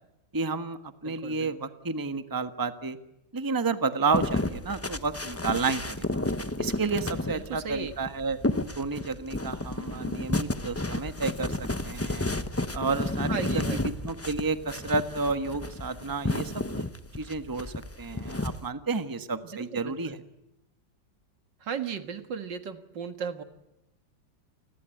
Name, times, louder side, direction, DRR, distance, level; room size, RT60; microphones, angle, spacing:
voice 1, 0.3-3.0 3.3-6.2 6.6-8.4 8.7-12.3 12.7-16.9 17.2-20.2, right 4 dB, 15° right, 10 dB, 1.2 m, -31 dB
voice 2, 1.1-1.5 7.3-7.9 13.3-13.8 19.5-20.2 21.6-23.4, right 6 dB, 70° right, 10 dB, 2.3 m, -36 dB
sound 1, 4.1-18.7, left 2 dB, 20° left, 0.4 m, -32 dB
29.0 x 21.0 x 9.1 m, 0.89 s
omnidirectional pair, 2.0 m